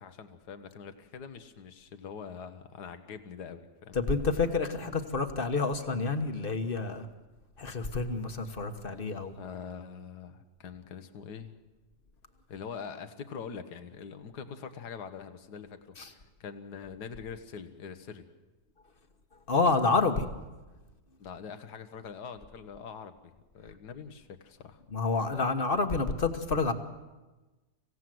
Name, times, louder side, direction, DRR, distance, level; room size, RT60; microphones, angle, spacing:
voice 1, 0.0-4.0 9.4-11.5 12.5-18.3 21.2-24.8, left 6 dB, 75° left, 9 dB, 1.8 m, -44 dB
voice 2, 3.9-7.1 7.6-9.4 16.0-16.1 19.5-20.3 24.9-26.7, left 4 dB, 35° left, 7 dB, 1.4 m, -28 dB
25.0 x 16.5 x 7.8 m, 1.2 s
omnidirectional pair, 1.8 m